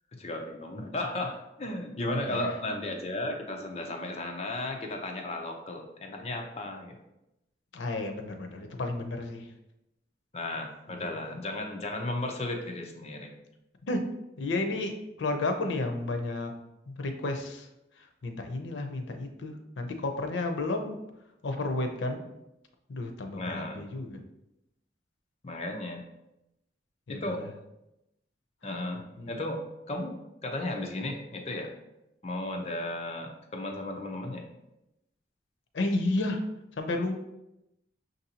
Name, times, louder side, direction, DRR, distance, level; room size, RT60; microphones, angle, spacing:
voice 1, 0.1-7.0 10.3-13.3 23.4-23.8 25.4-26.0 27.1-27.4 28.6-29.0 29.3-29.6 29.9-30.2 30.4-31.7 32.2-34.5, left 1 dB, 35° left, 2 dB, 0.5 m, -34 dB
voice 2, 7.7-9.5 10.9-11.1 13.9-14.1 14.4-16.5 16.9-17.7 18.0-21.0 21.4-22.2 22.9-24.2 27.1-27.5 28.6-29.4 35.7-36.5 36.8-37.2, left 2 dB, 90° left, 5 dB, 0.6 m, -32 dB
5.9 x 2.6 x 2.8 m, 0.90 s
head